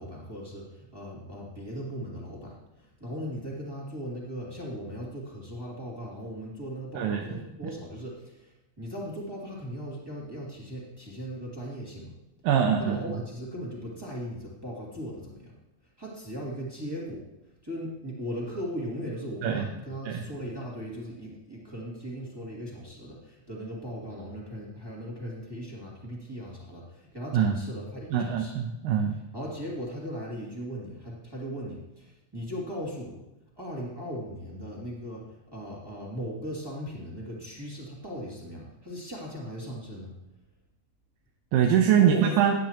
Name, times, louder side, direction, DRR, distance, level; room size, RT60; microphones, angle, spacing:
voice 1, 0.0-12.2 12.8-15.5 16.0-17.3 17.6-28.6 29.3-33.2 33.6-40.1 42.0-42.5, equal, 10° right, -5 dB, 2.0 m, -38 dB
voice 2, 12.4-13.0 19.4-19.7 20.1-20.2 27.3-27.6 28.1-29.2 41.5-42.5, right 8 dB, 85° right, 2 dB, 2.5 m, -23 dB
16.0 x 9.5 x 3.0 m, 0.92 s
omnidirectional pair, 3.9 m